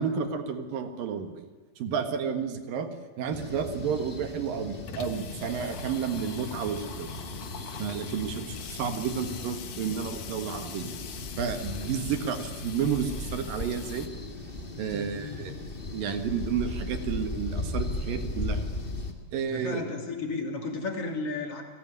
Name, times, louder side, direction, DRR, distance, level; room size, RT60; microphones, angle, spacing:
voice 1, 0.0-1.5 1.8-2.9 3.2-7.1 7.8-10.9 11.4-14.1 14.8-15.5 15.9-18.7 19.3-19.9, right 7 dB, 80° right, 8 dB, 3.4 m, -31 dB
sound 1, 3.3-19.1, left 2 dB, 20° left, 1.5 m, -37 dB
Water tap faucet / Sink (filling or washing), 4.4-14.1, left 8 dB, 60° left, 2.7 m, -44 dB
voice 2, 14.9-15.6 19.5-21.6, left 3 dB, 45° left, 3 dB, 3.7 m, -34 dB
29.5 x 19.0 x 9.7 m, 1.3 s
omnidirectional pair, 4.0 m